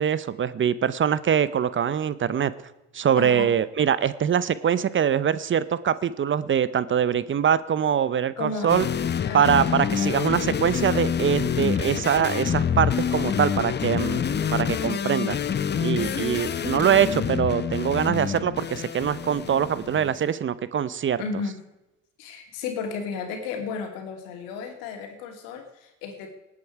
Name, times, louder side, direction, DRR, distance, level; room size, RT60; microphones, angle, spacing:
voice 1, 0.0-2.5 2.9-8.9 9.3-14.2 14.5-15.4 15.8-21.2, right 8 dB, 35° right, 17 dB, 0.7 m, -23 dB
voice 2, 3.1-3.5 8.4-8.8 9.2-10.4 16.0-16.7 21.2-21.6 22.2-26.3, left 5 dB, 85° left, 4 dB, 2.7 m, -34 dB
sound 1, 8.7-20.2, left 8 dB, 30° left, 0.8 m, -27 dB
18.5 x 8.6 x 4.8 m, 0.95 s
supercardioid pair, 75°, 33 cm